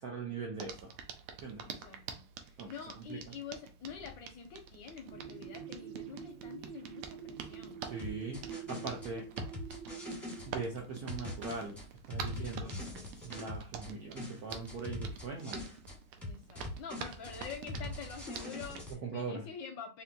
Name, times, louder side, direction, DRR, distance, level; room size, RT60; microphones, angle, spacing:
voice 1, 0.0-0.9 1.4-1.6 2.6-3.3 7.8-9.3 10.5-11.8 12.1-12.7 13.2-15.6 19.0-19.4, right 4 dB, 70° right, 0 dB, 0.9 m, -41 dB
Hands, 0.6-18.9, right 7 dB, 85° right, 1.5 m, -48 dB
voice 2, 1.7-7.9 12.3-13.2 16.2-20.0, left 6 dB, 75° left, 4 dB, 1.1 m, -47 dB
sound 1, 5.1-11.3, right 8 dB, 55° right, 2.3 m, -47 dB
sound 2, 8.0-10.5 11.1-13.9 14.2-16.0 16.2-18.9, left 2 dB, ahead, 0.8 m, -43 dB
4.2 x 2.8 x 2.6 m, 0.32 s
omnidirectional pair, 2.4 m